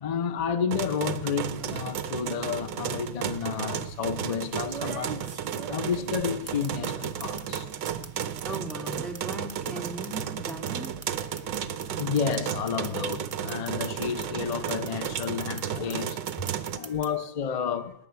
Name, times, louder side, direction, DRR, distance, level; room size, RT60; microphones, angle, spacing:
voice 1, 0.0-5.2 5.7-7.7 12.0-16.2 16.7-17.9, left 7 dB, 50° left, 0.4 m, -31 dB
sound 1, 0.7-16.8, right 9 dB, 70° right, 1.5 m, -33 dB
sound 2, 1.4-1.8 3.0-3.1 4.6-7.6 7.9-14.3 14.5-15.6 15.9-17.1, right 4 dB, 30° right, 0.6 m, -41 dB
voice 2, 8.4-10.9 16.4-16.9, right 2 dB, ahead, 2.1 m, -38 dB
19.5 x 6.6 x 9.5 m
omnidirectional pair, 2.1 m